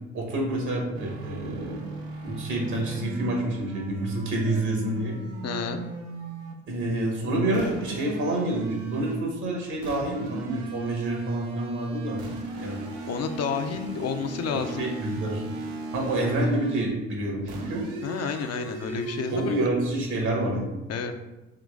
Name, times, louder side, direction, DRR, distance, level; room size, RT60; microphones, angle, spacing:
voice 1, 0.1-1.8 2.2-5.1 6.7-12.2 12.6-12.8 14.5-15.4 15.9-17.8 18.9-19.0 19.3-20.7, right 1 dB, 70° right, -1 dB, 1.4 m, -28 dB
sound 1, 0.9-6.6 7.5-9.3 9.8-16.9 17.5-19.7, right 3 dB, 90° right, 0.6 m, -37 dB
voice 2, 5.4-5.8 13.1-14.9 18.0-19.5 20.9-21.1, left 6 dB, 55° left, 6 dB, 0.5 m, -30 dB
3.8 x 3.0 x 3.5 m, 1.1 s
hypercardioid pair, 55°, 31 cm